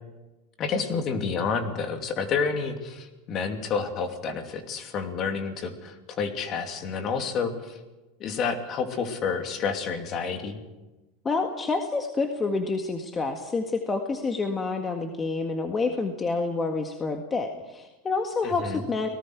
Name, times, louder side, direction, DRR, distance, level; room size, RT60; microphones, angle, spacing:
voice 1, 0.6-7.8 8.2-10.6 18.4-18.8, left 5 dB, 40° left, 5 dB, 2.9 m, -29 dB
voice 2, 11.3-19.1, left 3 dB, 20° left, 4 dB, 1.7 m, -28 dB
30.0 x 19.0 x 4.8 m, 1.1 s
supercardioid pair, 120°, 0 cm